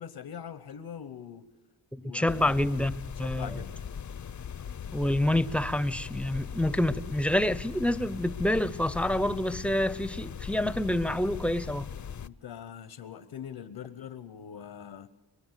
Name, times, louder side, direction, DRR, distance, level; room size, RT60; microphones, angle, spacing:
voice 1, 0.0-1.5 2.0-2.6 3.1-3.8 12.2-15.1, left 8 dB, 75° left, 1.1 m, -43 dB
voice 2, 1.9-2.9 3.2-3.5 4.9-11.9, left 1 dB, 5° left, 0.7 m, -27 dB
sound 1, 2.3-12.3, left 7 dB, 45° left, 0.7 m, -39 dB
23.0 x 22.5 x 8.2 m
cardioid pair, 80°, 42 cm